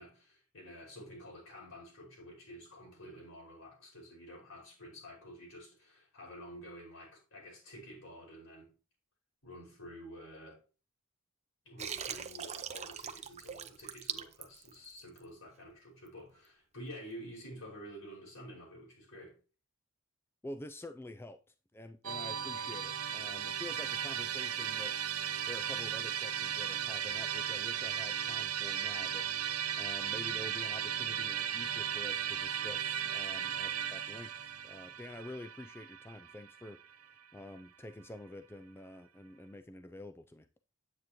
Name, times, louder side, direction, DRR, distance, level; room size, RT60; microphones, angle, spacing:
voice 1, 0.0-8.7 9.4-10.6 11.7-19.3, equal, 65° left, 5.6 m, -50 dB
Water, 11.8-15.2, right 8 dB, 30° right, 0.7 m, -41 dB
voice 2, 20.4-21.4 21.7-24.9 25.5-36.8 37.3-40.5, left 1 dB, 10° left, 0.4 m, -48 dB
Musical instrument, 22.0-37.2, right 9 dB, 90° right, 1.1 m, -36 dB
9.7 x 8.2 x 3.0 m
head